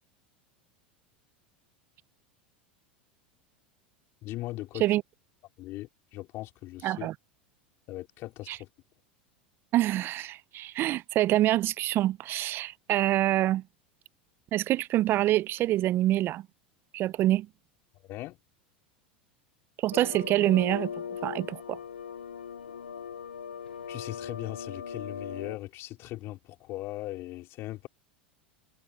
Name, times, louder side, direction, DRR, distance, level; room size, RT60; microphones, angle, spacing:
voice 1, 4.2-4.8 5.6-7.1 7.9-8.7 17.9-18.4 23.9-27.9, left 17 dB, 50° left, 4.4 m, -39 dB
voice 2, 6.8-7.1 8.5-8.6 9.7-13.6 14.5-16.5 16.9-17.5 19.8-20.9 21.2-21.8, right 14 dB, 45° right, 0.6 m, -26 dB
sound 1, 19.9-25.6, left 7 dB, 90° left, 0.8 m, -39 dB
hypercardioid pair, 90°, 5 cm